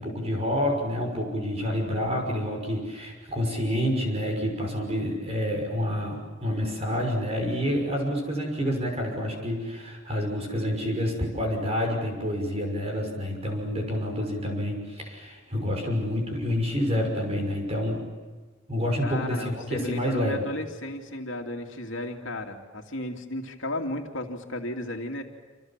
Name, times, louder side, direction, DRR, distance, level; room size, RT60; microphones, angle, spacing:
voice 1, 0.0-18.0 18.7-20.4, equal, 30° right, 2 dB, 6.1 m, -28 dB
voice 2, 19.0-25.2, left 1 dB, 70° left, 2 dB, 2.7 m, -34 dB
28.5 x 27.5 x 7.5 m, 1.4 s
head